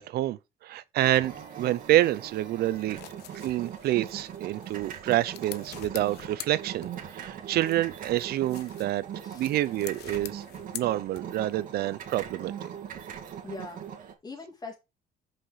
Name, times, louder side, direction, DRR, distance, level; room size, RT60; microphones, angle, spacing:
voice 1, 0.0-3.0 3.3-9.0 9.3-10.4 10.7-12.7, right 14 dB, 70° right, 0.6 m, -28 dB
sound 1, 1.0-14.1, right 8 dB, 55° right, 2.0 m, -41 dB
sound 2, 2.6-7.2 7.6-11.6, left 15 dB, 75° left, 0.6 m, -46 dB
voice 2, 13.4-14.8, left 3 dB, 25° left, 2.8 m, -42 dB
5.8 x 5.2 x 4.9 m
cardioid pair, 110°, 17 cm